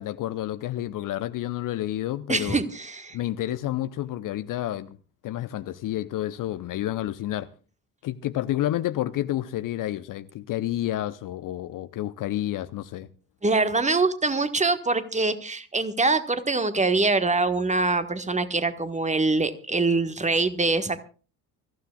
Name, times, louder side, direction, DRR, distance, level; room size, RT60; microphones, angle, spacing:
voice 1, 0.0-2.6 3.1-5.0 5.2-7.5 8.0-13.1, left 13 dB, 40° left, 0.8 m, -30 dB
voice 2, 2.3-3.2 13.4-21.0, right 3 dB, 15° right, 1.4 m, -24 dB
24.5 x 15.0 x 2.4 m
figure-of-eight pair, 50°, 49 cm